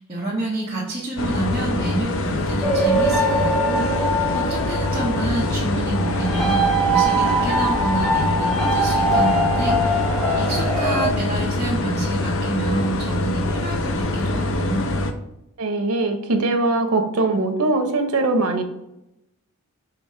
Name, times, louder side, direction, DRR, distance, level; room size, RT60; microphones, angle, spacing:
voice 1, 0.0-14.9, right 2 dB, 25° right, -8 dB, 1.1 m, -28 dB
sound 1, 1.2-15.1, left 2 dB, 60° left, 0.5 m, -24 dB
sound 2, 2.6-11.1, right 1 dB, 5° left, 0.5 m, -22 dB
voice 2, 15.6-18.6, right 2 dB, 90° right, 6 dB, 0.8 m, -21 dB
5.3 x 2.9 x 3.2 m, 0.87 s
head